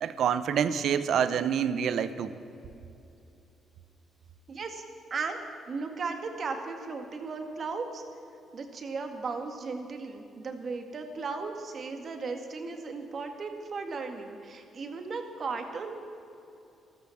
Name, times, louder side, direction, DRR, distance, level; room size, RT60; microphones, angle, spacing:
voice 1, 0.0-2.3, right 8 dB, 70° right, 13 dB, 0.8 m, -27 dB
voice 2, 4.5-4.8 5.1-5.4 5.7-8.0 8.5-16.0, right 4 dB, 50° right, 5 dB, 2.0 m, -36 dB
13.5 x 13.0 x 7.2 m, 2.8 s
cardioid pair, 90°, 0 cm